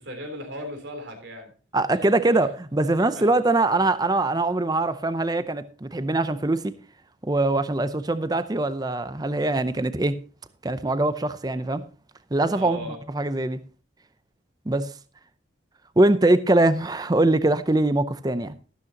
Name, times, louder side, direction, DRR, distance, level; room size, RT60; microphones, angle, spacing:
voice 1, 0.0-1.5 1.9-2.5 3.2-3.3 12.5-13.0, equal, 65° right, 3.5 m, -37 dB
voice 2, 1.7-6.7 7.2-10.2 10.6-11.9 12.3-13.6 14.7-14.9 16.0-18.6, right 2 dB, 20° right, 0.6 m, -22 dB
13.5 x 12.5 x 2.9 m
head